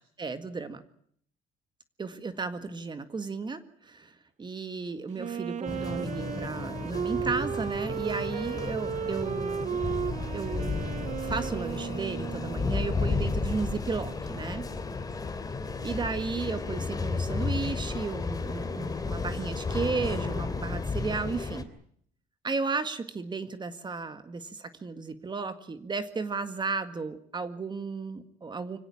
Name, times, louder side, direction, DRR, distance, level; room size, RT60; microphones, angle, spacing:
voice 1, 0.2-0.8 2.0-9.8 10.3-10.9 11.2-14.7 15.8-21.7 22.4-28.8, right 4 dB, 25° right, 10 dB, 1.9 m, -34 dB
Wind instrument woodwind instrument, 5.2-12.8, right 8 dB, 45° right, 1.1 m, -34 dB
sound 1, 5.7-21.6, left 4 dB, 20° left, 2.9 m, -33 dB
25.0 x 17.0 x 8.7 m, 0.65 s
cardioid pair, 110°, 17 cm